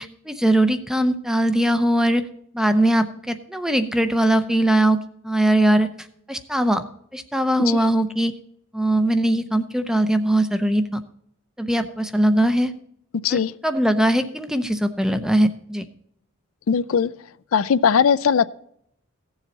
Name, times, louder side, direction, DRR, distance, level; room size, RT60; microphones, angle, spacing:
voice 1, 0.0-2.2 2.5-5.0 5.2-5.9 6.3-6.8 7.1-8.3 8.7-11.0 11.6-12.7 13.3-15.9, right 1 dB, 5° right, 9 dB, 0.6 m, -20 dB
voice 2, 16.7-17.1 17.5-18.4, left 7 dB, 75° left, 15 dB, 0.4 m, -19 dB
16.0 x 7.3 x 4.0 m, 0.70 s
head